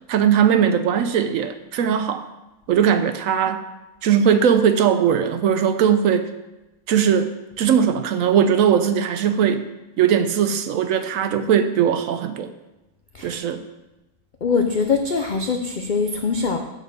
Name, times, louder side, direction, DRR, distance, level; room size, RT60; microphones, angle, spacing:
voice 1, 0.1-2.2 2.7-3.6 4.0-6.3 6.9-7.3 7.6-9.7 10.0-12.5 13.2-13.6, right 8 dB, 70° right, 10 dB, 0.9 m, -19 dB
voice 2, 14.4-16.6, left 5 dB, 90° left, 5 dB, 0.4 m, -22 dB
8.5 x 4.3 x 6.6 m, 1.0 s
omnidirectional pair, 1.6 m